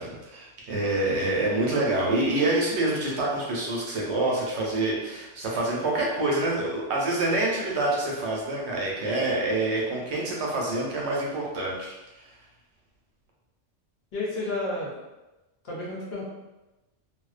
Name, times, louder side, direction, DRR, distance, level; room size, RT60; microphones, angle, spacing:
voice 1, 0.0-12.0, right 2 dB, 70° right, -3 dB, 0.9 m, -26 dB
voice 2, 14.1-14.9 15.6-16.2, left 2 dB, 60° left, -5 dB, 0.9 m, -31 dB
2.4 x 2.1 x 2.4 m, 1.0 s
omnidirectional pair, 1.2 m